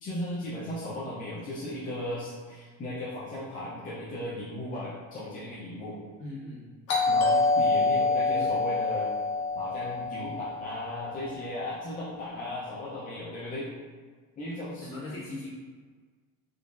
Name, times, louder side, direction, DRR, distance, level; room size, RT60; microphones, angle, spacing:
voice 1, 0.0-6.0 7.1-9.1 9.5-13.7 14.4-14.9, left 1 dB, 25° left, -9 dB, 0.5 m, -36 dB
voice 2, 6.2-6.7 7.3-7.9 8.3-8.5 12.3-12.7 14.6-15.5, left 2 dB, 40° left, -8 dB, 1.3 m, -41 dB
Doorbell, 6.9-11.5, left 3 dB, 65° left, 0.9 m, -26 dB
3.8 x 3.1 x 2.4 m, 1.5 s
cardioid pair, 170°, 34 cm